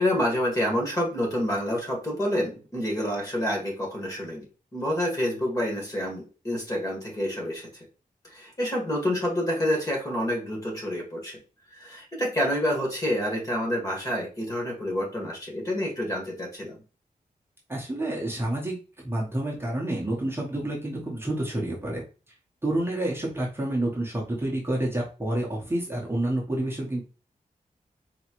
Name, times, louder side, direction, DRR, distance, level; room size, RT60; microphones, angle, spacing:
voice 1, 0.0-4.5 4.7-7.9 8.3-11.4 11.7-16.8, left 1 dB, 25° left, -1 dB, 1.7 m, -28 dB
voice 2, 17.7-18.8 19.0-22.0 22.6-27.0, right 1 dB, 15° right, -4 dB, 1.0 m, -29 dB
4.2 x 3.1 x 3.0 m, 0.34 s
wide cardioid pair, 155°, 14 cm